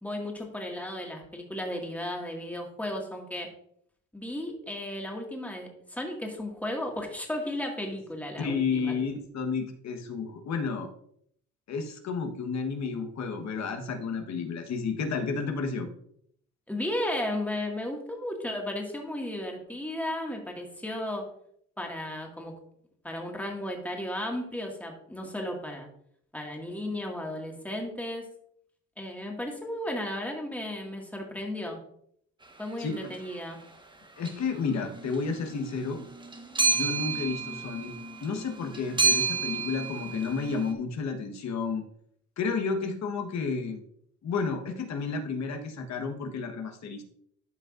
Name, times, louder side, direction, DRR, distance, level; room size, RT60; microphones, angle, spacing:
voice 1, 0.0-3.5 4.1-9.0 16.7-21.3 21.8-22.5 23.0-25.9 26.3-28.3 29.0-31.8 32.6-33.6, left 1 dB, 5° left, 0 dB, 2.0 m, -34 dB
voice 2, 8.4-10.9 11.7-15.9 32.8-33.1 34.2-36.0 36.7-37.9 38.2-41.8 42.4-43.8 44.2-47.0, left 5 dB, 65° left, 5 dB, 1.4 m, -31 dB
sound 1, 33.0-33.2 34.2-34.7 34.9-40.7, right 4 dB, 15° right, 1.1 m, -30 dB
13.0 x 5.2 x 2.6 m, 0.67 s
cardioid pair, 90°, 30 cm